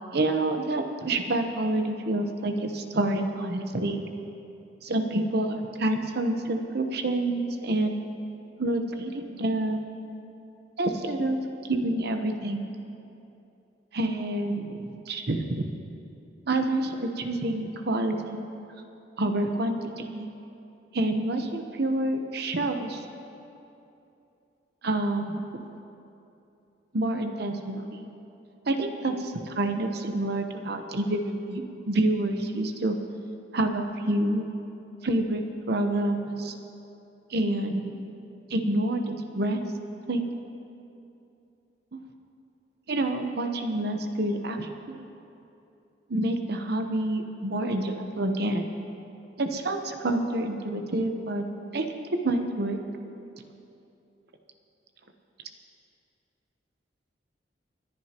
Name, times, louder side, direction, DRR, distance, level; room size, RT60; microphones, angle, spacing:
voice 1, 0.1-4.0 4.8-8.0 8.6-9.8 10.8-11.4 11.7-12.7 13.9-15.7 16.5-18.4 19.2-20.3 20.9-23.0 24.8-25.4 26.9-28.1 28.7-33.0 33.5-34.4 35.0-36.5 37.3-38.0 38.5-39.6 40.1-40.2 41.9-42.0 42.9-45.0 46.1-48.7 49.4-51.4 51.7-51.9 52.2-52.8, right 1 dB, 60° right, 5 dB, 1.0 m, -28 dB
28.5 x 11.0 x 3.0 m, 2.8 s
head